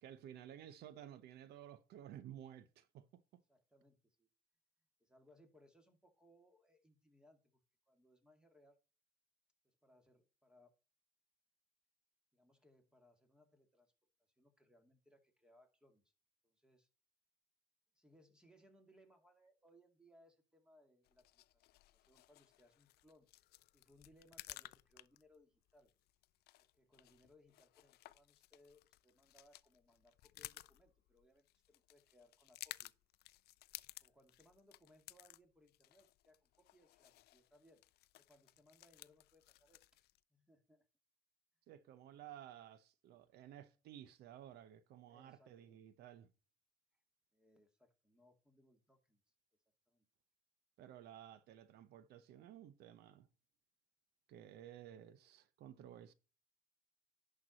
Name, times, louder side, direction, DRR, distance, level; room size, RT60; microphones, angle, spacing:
voice 1, 0.0-3.2 41.7-46.3 50.8-53.3 54.3-56.1, right 11 dB, 75° right, 0.8 m, -55 dB
voice 2, 3.5-4.3 5.0-7.6 7.9-8.8 9.6-10.7 12.3-13.9 14.4-16.1 16.4-16.9 17.9-21.7 21.9-23.3 23.7-25.9 26.7-32.9 34.0-37.8 38.1-39.9 40.3-40.9 45.1-45.8 47.3-49.2 49.9-50.0, left 1 dB, 5° right, 2.2 m, -69 dB
sound 1, 21.0-40.2, left 17 dB, 70° left, 0.4 m, -57 dB
11.0 x 4.7 x 4.0 m
cardioid pair, 110°, 17 cm